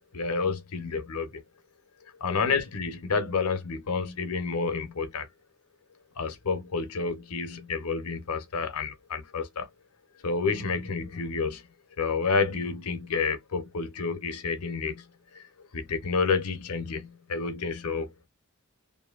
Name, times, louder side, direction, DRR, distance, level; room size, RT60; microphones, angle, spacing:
voice 1, 0.1-1.4 2.2-5.3 6.2-9.7 10.2-11.6 12.0-15.0 15.3-15.4 15.7-18.3, left 4 dB, 90° left, 0.7 m, -29 dB
2.6 x 2.5 x 2.3 m
head